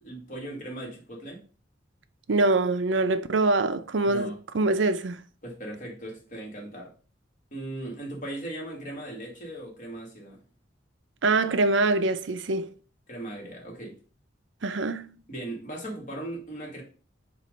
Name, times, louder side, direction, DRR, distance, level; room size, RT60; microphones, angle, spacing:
voice 1, 0.0-1.4 4.0-4.4 5.4-6.9 7.5-10.4 13.1-14.0 15.3-16.8, right 1 dB, 45° left, 2.0 m, -38 dB
voice 2, 2.3-5.2 11.2-12.7 14.6-15.2, right 2 dB, 70° right, 0.6 m, -24 dB
7.3 x 2.6 x 5.1 m
head